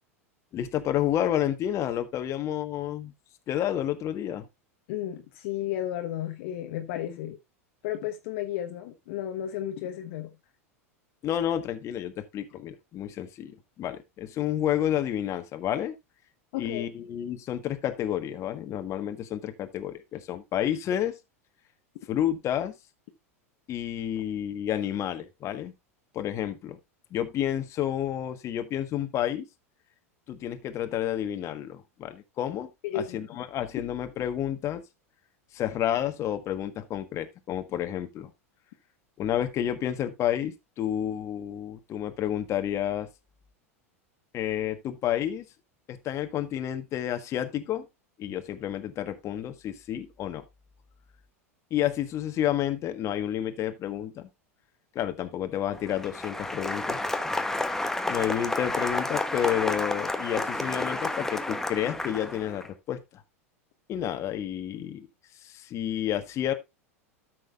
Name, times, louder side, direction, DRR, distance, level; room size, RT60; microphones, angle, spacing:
voice 1, 0.5-3.1 3.5-4.4 11.2-15.9 16.5-21.2 22.1-22.7 23.7-25.7 26.1-26.8 27.1-29.5 30.3-34.8 35.5-38.3 39.2-43.1 44.3-45.4 45.9-47.9 48.2-50.4 51.7-54.3 54.9-57.0 58.1-63.2 63.9-65.1 65.4-66.5, left 11 dB, 40° left, 1.4 m, -30 dB
voice 2, 4.9-7.4 7.8-10.3 16.5-16.9 32.8-33.2, left 11 dB, 60° left, 1.2 m, -33 dB
Applause, 55.7-62.7, left 2 dB, 5° left, 1.1 m, -30 dB
13.0 x 6.4 x 2.5 m
hypercardioid pair, 90°, 8 cm